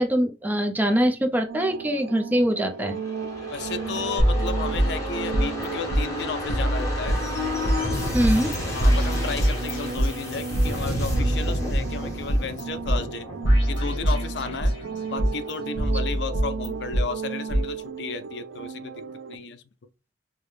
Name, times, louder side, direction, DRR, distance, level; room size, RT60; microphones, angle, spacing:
voice 1, 0.0-3.0 8.1-8.6, equal, 10° right, 0.5 m, -23 dB
sound 1, 1.5-19.4, right 6 dB, 85° right, 0.3 m, -36 dB
sound 2, 2.8-16.3 16.6-16.7, left 1 dB, 15° left, 1.1 m, -32 dB
voice 2, 3.5-7.2 8.7-13.3 13.7-14.7 15.1-19.0 19.3-19.6, left 5 dB, 65° left, 0.4 m, -33 dB
sound 3, 4.2-5.7 5.9-6.0 6.5-7.8 8.2-8.6 8.8-10.7 11.1-12.6 12.9-13.0 13.4-14.8 15.2-17.0 17.5-17.6, equal, 80° left, 2.0 m, -24 dB
4.8 x 2.1 x 3.2 m
head